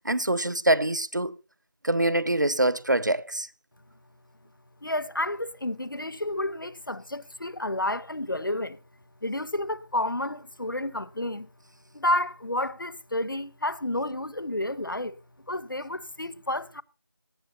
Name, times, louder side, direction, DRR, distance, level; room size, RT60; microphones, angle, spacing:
voice 1, 0.0-1.3 1.8-3.5, right 1 dB, 55° right, 0.7 m, -24 dB
voice 2, 4.8-8.8 9.2-11.5 11.9-15.2 15.5-16.8, left 1 dB, 65° left, 0.9 m, -30 dB
18.0 x 11.0 x 2.8 m
figure-of-eight pair, 175°, 12 cm